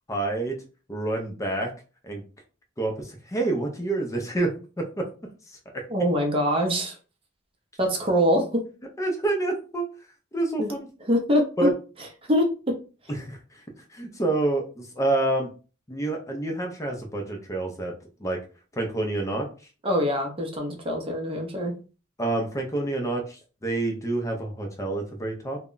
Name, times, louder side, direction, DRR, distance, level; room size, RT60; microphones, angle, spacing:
voice 1, 0.1-0.6 0.9-1.7 2.0-2.2 2.8-4.5 4.8-5.0 5.5-5.6 9.0-9.9 10.3-10.9 11.6-11.7 13.2-13.6 13.9-15.5 15.9-17.9 18.2-18.4 18.7-19.5 22.2-25.6, right 2 dB, 15° left, 2 dB, 0.5 m, -27 dB
voice 2, 5.9-7.0 7.8-8.6 10.6-10.7 11.1-11.4 12.3-12.4 19.8-21.7, equal, 30° right, 2 dB, 0.6 m, -23 dB
2.2 x 2.0 x 3.7 m, 0.34 s
head